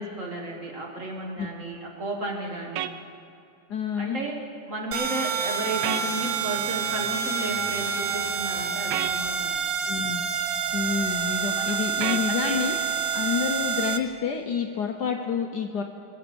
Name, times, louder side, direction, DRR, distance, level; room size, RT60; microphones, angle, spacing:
voice 1, 0.0-2.9 4.0-4.4 4.7-9.6 11.6-11.8 12.3-12.6, right 1 dB, 40° right, 0 dB, 1.9 m, -33 dB
sound 1, 2.8-2.9 5.8-6.1 8.9-9.1 12.0-12.3, right 12 dB, 85° right, 1.5 m, -29 dB
voice 2, 3.7-4.2 9.9-10.2 10.7-12.7 13.1-15.8, left 6 dB, 60° left, 4 dB, 1.2 m, -28 dB
sound 2, 4.9-14.0, right 7 dB, 70° right, 1.4 m, -28 dB
22.0 x 7.8 x 6.9 m, 2.6 s
omnidirectional pair, 2.3 m